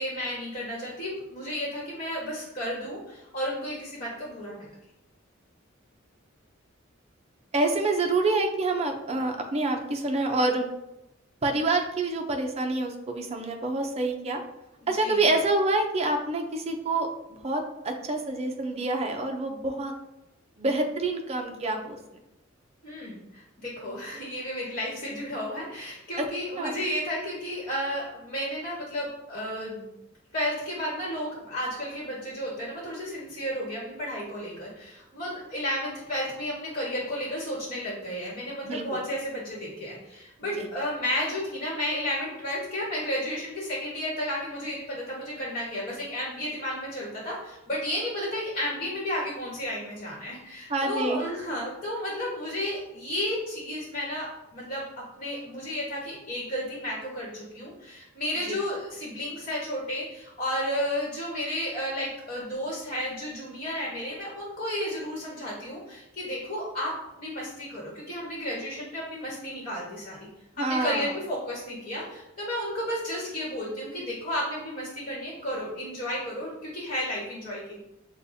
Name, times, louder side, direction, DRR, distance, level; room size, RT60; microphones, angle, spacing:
voice 1, 0.0-4.7 14.8-15.3 22.8-29.9 30.3-54.3 54.5-54.8 55.2-66.9 67.2-70.2 70.6-77.8, equal, 35° left, -6 dB, 1.3 m, -32 dB
voice 2, 7.5-10.7 11.4-14.4 14.9-17.1 17.4-19.9 20.6-22.0 26.6-26.7 38.6-38.8 40.6-40.7 50.7-51.2 58.5-58.6 70.6-71.1, right 2 dB, 30° right, 3 dB, 0.5 m, -27 dB
6.5 x 2.3 x 2.7 m, 0.91 s
head